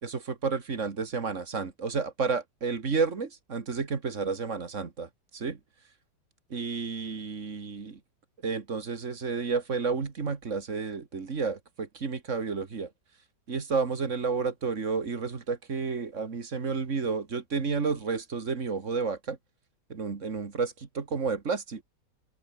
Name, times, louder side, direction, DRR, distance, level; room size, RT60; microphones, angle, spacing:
voice 1, 0.0-5.6 6.5-8.0 8.4-12.9 13.5-19.4 19.9-21.8, right 5 dB, 45° right, 2.2 m, -31 dB
omnidirectional pair, 1.9 m